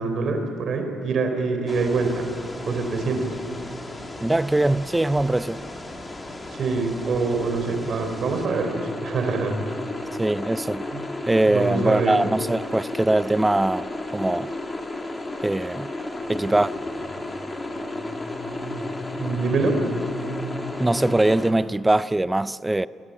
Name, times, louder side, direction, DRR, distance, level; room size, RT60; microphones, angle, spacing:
voice 1, 0.0-2.3 2.7-3.4 6.6-9.6 10.9-11.1 11.5-12.2 19.1-19.8, right 4 dB, 60° right, 4.2 m, -25 dB
sound 1, 1.7-21.5, left 2 dB, 20° left, 3.1 m, -33 dB
voice 2, 4.2-5.6 10.2-10.8 11.3-13.9 14.1-14.5 15.4-15.9 16.3-16.7 20.8-22.9, right 2 dB, 10° right, 0.6 m, -22 dB
24.5 x 17.0 x 8.8 m
cardioid pair, 90°, 0 cm